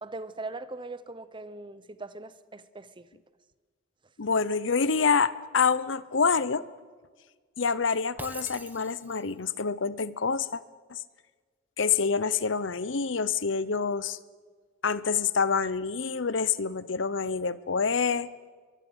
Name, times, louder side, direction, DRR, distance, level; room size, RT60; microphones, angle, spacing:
voice 1, 0.0-3.1, right 2 dB, 25° right, 14 dB, 1.0 m, -40 dB
voice 2, 4.2-6.6 7.6-10.6 10.9-11.0 11.8-14.2 14.8-18.3, left 5 dB, 70° left, 17 dB, 0.8 m, -27 dB
Shatter, 8.2-9.4, right 2 dB, 10° right, 1.3 m, -44 dB
23.0 x 22.5 x 8.1 m, 1.5 s
head